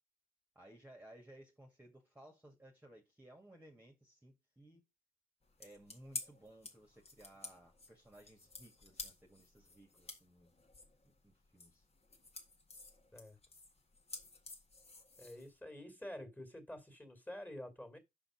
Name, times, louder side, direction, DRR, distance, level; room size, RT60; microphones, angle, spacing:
voice 1, 0.6-4.8 5.6-10.5 11.0-11.9, right 1 dB, 10° right, 2.0 m, -59 dB
sound 1, 5.4-15.6, left 3 dB, 30° left, 1.8 m, -52 dB
voice 2, 15.2-18.0, left 1 dB, 10° left, 2.7 m, -48 dB
5.7 x 5.2 x 6.3 m
cardioid pair, 90°, 20 cm